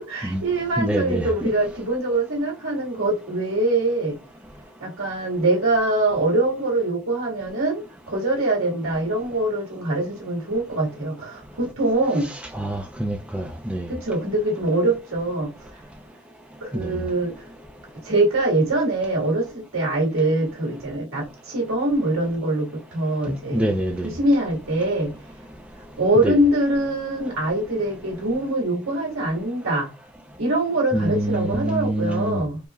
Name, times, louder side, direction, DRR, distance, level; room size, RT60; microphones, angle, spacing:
voice 1, 0.0-4.2 4.8-12.3 13.9-15.5 16.6-17.3 18.0-23.6 24.0-25.1 26.0-29.9 30.4-32.6, right 2 dB, 75° right, 1.9 m, -23 dB
voice 2, 0.8-1.5 12.5-13.9 16.7-16.9 23.3-24.1 26.2-26.4 30.9-32.4, right 1 dB, 5° right, 0.4 m, -25 dB
4.7 x 2.9 x 2.4 m
head